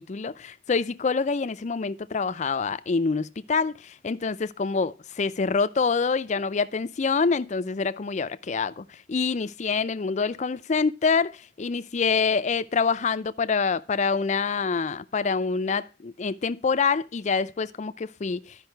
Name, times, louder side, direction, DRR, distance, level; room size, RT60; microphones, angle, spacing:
voice 1, 0.0-18.5, left 5 dB, 40° left, 0.4 m, -26 dB
11.5 x 5.3 x 4.5 m
head